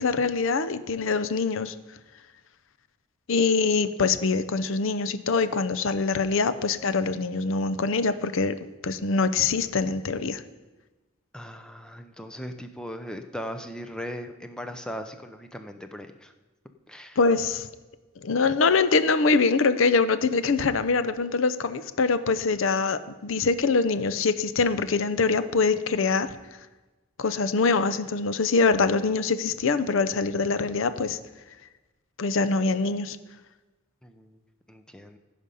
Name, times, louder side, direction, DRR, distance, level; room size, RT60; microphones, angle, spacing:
voice 1, 0.0-1.7 3.3-8.6 8.8-10.4 17.2-17.7 18.2-26.3 27.2-31.2 32.2-33.2, left 4 dB, 65° left, 13 dB, 0.6 m, -24 dB
voice 2, 11.3-16.3 16.9-17.2 34.0-34.4 34.7-35.2, equal, 5° left, 7 dB, 0.5 m, -38 dB
15.0 x 5.1 x 5.5 m, 1.2 s
head